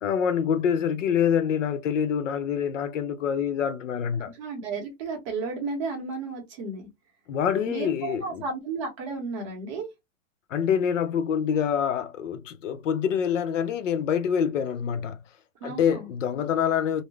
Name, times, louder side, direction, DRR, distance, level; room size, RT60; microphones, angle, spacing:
voice 1, 0.0-4.3 7.3-8.4 10.5-15.2 15.6-17.0, left 8 dB, 65° left, 0.5 m, -26 dB
voice 2, 4.3-6.9 7.7-9.9 15.6-16.1, right 4 dB, 25° right, 0.8 m, -33 dB
2.6 x 2.0 x 3.1 m
hypercardioid pair, 170°, 40 cm